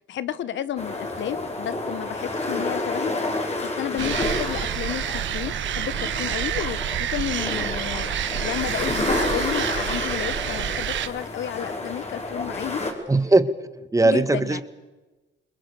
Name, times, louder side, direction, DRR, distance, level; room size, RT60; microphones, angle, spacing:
voice 1, 0.0-8.1 8.4-12.8 14.0-14.6, left 11 dB, 70° left, 15 dB, 1.2 m, -32 dB
sound 1, 0.8-12.9, left 2 dB, 35° left, 5.5 m, -30 dB
sound 2, 4.0-11.1, right 10 dB, 70° right, 1.5 m, -28 dB
voice 2, 13.1-13.5 13.9-14.6, right 2 dB, 15° right, 11 dB, 1.7 m, -19 dB
28.5 x 21.0 x 6.9 m, 1.1 s
cardioid pair, 90°, 20 cm